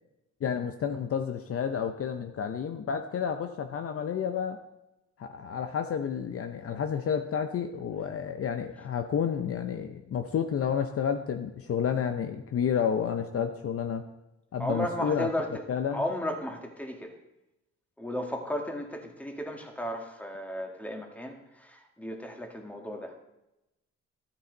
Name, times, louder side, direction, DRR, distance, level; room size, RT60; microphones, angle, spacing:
voice 1, 0.4-4.6 5.2-14.0 14.5-15.3 15.7-16.0, left 7 dB, 50° left, 6 dB, 0.7 m, -30 dB
voice 2, 14.6-15.5 15.9-17.1 18.0-23.1, equal, 5° left, 2 dB, 1.7 m, -34 dB
13.0 x 8.9 x 4.0 m, 0.93 s
cardioid pair, 90°, 30 cm